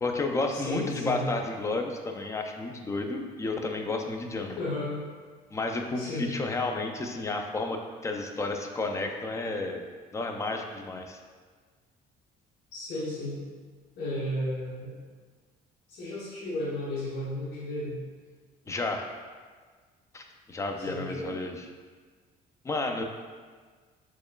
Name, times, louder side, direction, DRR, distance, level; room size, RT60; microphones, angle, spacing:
voice 1, 0.0-4.6 5.5-9.8 10.1-11.2 18.7-19.1 20.1-21.6 22.6-23.0, left 3 dB, 15° left, 4 dB, 0.3 m, -31 dB
voice 2, 0.5-1.2 4.6-5.0 6.0-6.3 12.7-13.4 14.0-14.9 15.9-18.0 20.8-21.3, left 1 dB, 75° left, -7 dB, 1.0 m, -33 dB
4.2 x 2.9 x 2.3 m, 1.5 s
cardioid pair, 110°, 17 cm